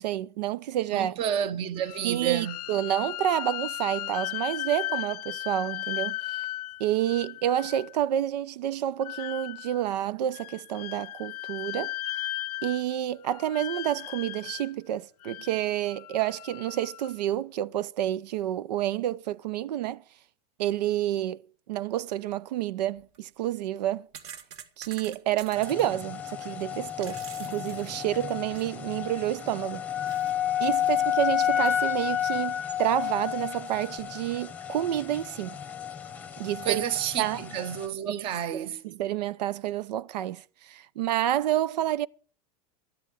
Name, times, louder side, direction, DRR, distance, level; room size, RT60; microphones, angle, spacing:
voice 1, 0.0-1.2 2.0-6.2 6.8-11.9 12.6-20.0 20.6-21.4 21.7-24.1 24.8-29.9 30.6-35.6 36.4-36.8 37.2-37.4 38.1-38.2 38.5-42.1, right 12 dB, 90° right, 0.7 m, -29 dB
voice 2, 0.9-2.6 36.6-38.8, right 9 dB, 25° right, 0.9 m, -30 dB
sound 1, 1.8-8.0 9.0-9.9 10.3-13.0 13.2-14.7 15.2-17.2, left 16 dB, 70° left, 0.6 m, -36 dB
sound 2, 23.0-23.2 23.8-25.8 26.7-28.8 29.2-29.3 30.1-30.3 30.6-30.7 31.6-32.2 32.6-32.7 33.2-34.0, right 8 dB, 50° right, 1.9 m, -47 dB
sound 3, 25.5-37.9, left 10 dB, 5° left, 1.0 m, -31 dB
13.0 x 10.5 x 7.2 m
supercardioid pair, 170°, 20 cm